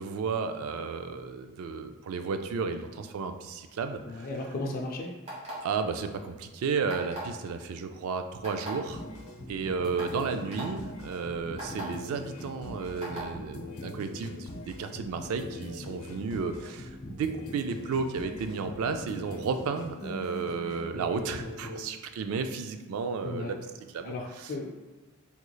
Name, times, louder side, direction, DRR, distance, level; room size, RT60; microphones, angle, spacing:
voice 1, 0.0-4.3 5.6-9.0 9.5-23.6 23.9-24.1 24.4-24.5, right 5 dB, 75° right, 7 dB, 0.3 m, -33 dB
voice 2, 4.0-5.1 23.2-23.5 24.0-24.8, left 2 dB, 40° left, 0 dB, 0.3 m, -35 dB
sound 1, 5.2-5.7 6.9-7.3 8.4-8.7 9.4-9.5 10.0-10.1 10.5-10.6 11.6-11.8 13.0-13.3, right 1 dB, 30° right, 1.4 m, -38 dB
sound 2, 8.9-21.8, left 2 dB, 75° left, 0.7 m, -42 dB
3.6 x 3.1 x 2.2 m, 1.3 s
head